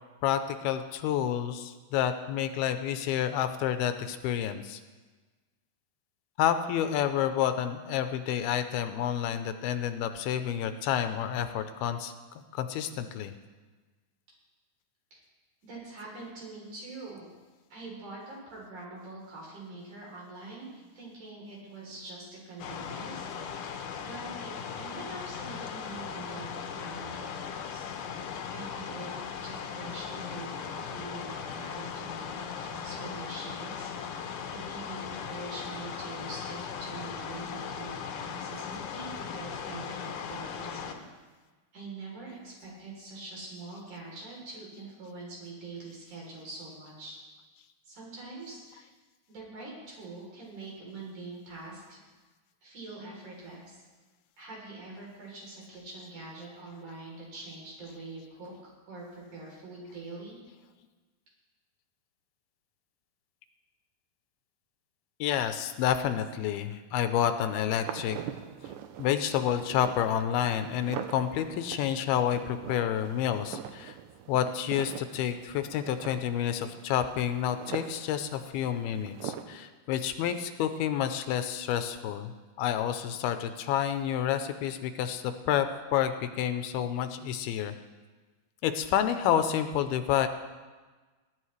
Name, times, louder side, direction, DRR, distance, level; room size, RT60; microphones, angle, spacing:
voice 1, 0.2-4.8 6.4-12.1 12.5-13.3 65.2-68.2 69.0-74.0 74.3-85.7 85.9-87.7 88.6-90.3, left 10 dB, 90° left, 9 dB, 2.6 m, -29 dB
voice 2, 15.6-17.3 17.7-23.7 24.0-27.9 28.4-41.1 41.7-47.2 47.8-48.9 49.3-52.0 52.6-53.8 54.4-60.4, right 2 dB, 50° right, -4 dB, 4.8 m, -44 dB
sound 1, 22.6-40.9, left 7 dB, 70° left, 2.1 m, -38 dB
sound 2, 67.7-79.4, right 9 dB, 90° right, 1.8 m, -43 dB
20.5 x 10.5 x 3.2 m, 1.3 s
omnidirectional pair, 4.5 m